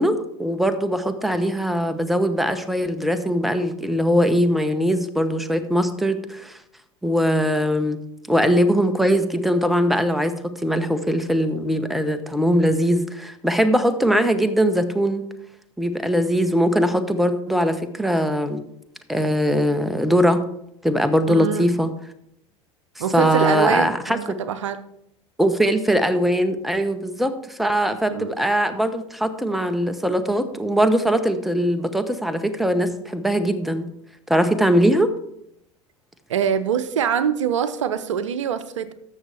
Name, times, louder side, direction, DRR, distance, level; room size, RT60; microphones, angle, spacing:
voice 1, 0.0-6.6 7.0-8.0 8.3-15.2 15.8-18.6 19.1-20.4 20.8-21.9 23.1-24.4 25.4-33.9 34.3-35.1, equal, ahead, 9 dB, 0.8 m, -21 dB
voice 2, 21.3-21.7 23.0-24.8 28.1-28.3 36.3-38.9, right 8 dB, 75° right, 13 dB, 0.6 m, -24 dB
14.0 x 6.3 x 3.3 m, 0.78 s
figure-of-eight pair, 80°, 16 cm